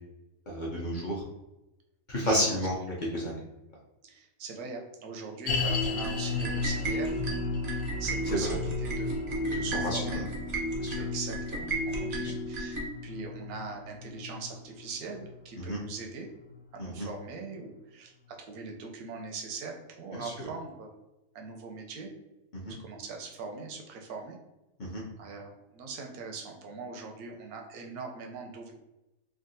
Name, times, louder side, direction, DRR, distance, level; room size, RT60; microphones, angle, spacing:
voice 1, 0.5-1.2 2.1-2.7 3.1-3.4 8.3-8.5 9.4-10.2 10.8-11.0 12.2-12.3 15.6-15.8 16.8-17.1 20.1-20.5 22.5-22.7 24.8-25.0, equal, 50° left, -4 dB, 0.5 m, -32 dB
voice 2, 4.0-7.2 8.0-10.2 11.0-16.3 16.7-20.9 21.3-22.1 22.8-24.4 25.2-28.7, right 4 dB, 90° right, 2 dB, 1.1 m, -41 dB
sound 1, 5.5-16.7 17.0-17.1 17.7-17.8, left 3 dB, 80° left, 1.1 m, -36 dB
sound 2, 5.7-12.9, right 1 dB, 60° right, 0.4 m, -34 dB
3.6 x 2.2 x 2.6 m, 0.97 s
omnidirectional pair, 1.5 m